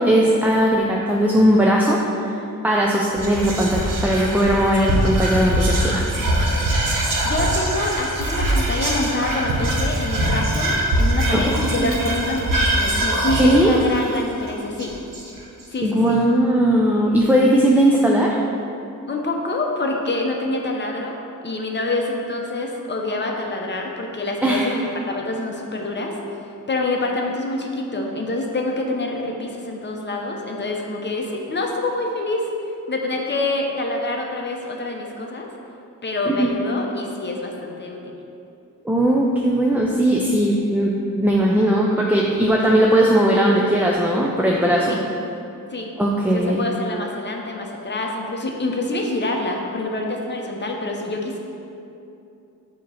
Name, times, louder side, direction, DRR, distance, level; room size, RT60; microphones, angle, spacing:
voice 1, 0.0-2.4 2.6-6.0 11.3-11.9 13.4-13.7 15.8-18.4 24.4-24.7 36.3-36.5 38.8-45.0 46.0-46.6, right 1 dB, 5° right, -2 dB, 0.3 m, -18 dB
Whispering, 3.1-15.6, right 1 dB, 70° right, 1.3 m, -22 dB
voice 2, 7.2-14.9 15.7-16.2 19.1-21.1 21.4-26.2 26.7-32.5 32.9-35.5 36.0-38.1 44.9-45.0 45.7-45.9 46.3-51.4, left 2 dB, 35° left, 1 dB, 0.7 m, -26 dB
7.5 x 3.0 x 5.5 m, 2.7 s
wide cardioid pair, 145°, 33 cm